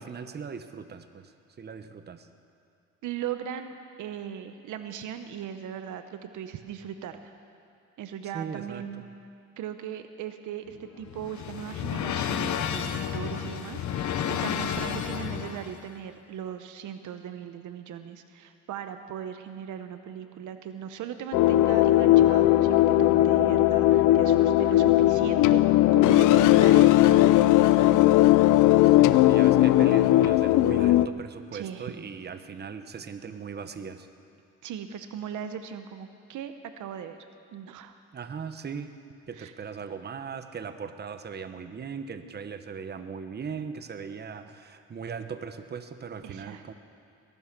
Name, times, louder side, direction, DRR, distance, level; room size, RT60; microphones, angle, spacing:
voice 1, 0.0-2.3 8.3-9.1 13.4-13.6 28.9-34.1 38.1-38.9 39.3-46.7, right 6 dB, 35° right, 9 dB, 0.9 m, -39 dB
voice 2, 3.0-7.2 8.0-9.0 9.6-28.3 31.5-31.9 34.6-37.2 37.5-38.0 39.4-39.5 46.2-46.6, right 9 dB, 80° right, 9 dB, 0.9 m, -38 dB
sound 1, 10.7-15.8, left 8 dB, 70° left, 1.0 m, -31 dB
sound 2, 21.3-31.1, left 15 dB, 90° left, 0.5 m, -19 dB
20.5 x 11.0 x 6.0 m, 2.4 s
cardioid pair, 90°, 30 cm